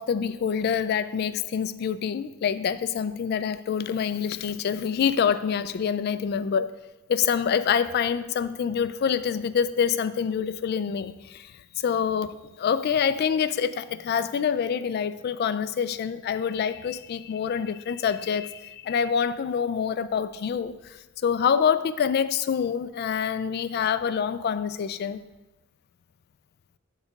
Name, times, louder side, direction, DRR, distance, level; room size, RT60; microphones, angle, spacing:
voice 1, 0.0-6.7 7.1-21.0 21.2-25.2, left 7 dB, 50° left, 13 dB, 0.3 m, -26 dB
7.2 x 4.0 x 5.1 m, 1.0 s
head